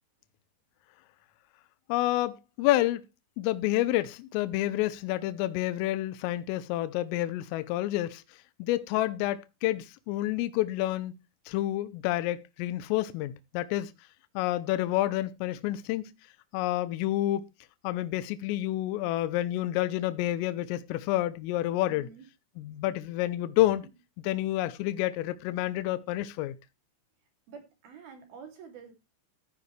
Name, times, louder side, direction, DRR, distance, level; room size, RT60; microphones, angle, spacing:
voice 1, 1.9-3.0 3.4-8.2 8.6-11.1 11.5-13.9 14.4-16.1 16.5-17.4 17.8-22.1 22.6-23.9 24.2-26.6, left 15 dB, 80° left, 3.3 m, -29 dB
voice 2, 21.9-22.3 27.5-28.9, right 6 dB, 50° right, 4.2 m, -48 dB
14.5 x 9.5 x 3.3 m
omnidirectional pair, 6.0 m